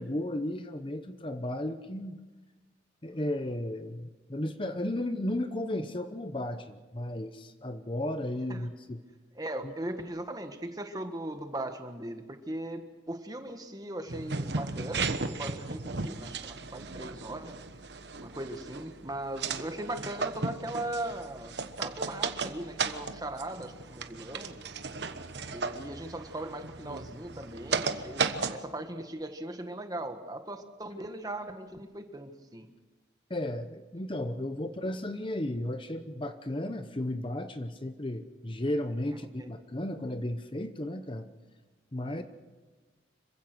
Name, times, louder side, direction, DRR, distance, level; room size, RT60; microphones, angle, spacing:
voice 1, 0.0-2.2 3.0-9.0 9.6-9.7 33.3-41.3 41.9-42.2, left 1 dB, 25° left, 9 dB, 0.8 m, -34 dB
voice 2, 9.3-17.6 18.2-24.6 25.5-32.7 39.1-39.5 42.0-42.2, right 1 dB, 20° right, 7 dB, 1.5 m, -39 dB
sound 1, 14.1-28.6, right 4 dB, 65° right, 1.2 m, -35 dB
26.5 x 16.0 x 6.2 m, 1.3 s
head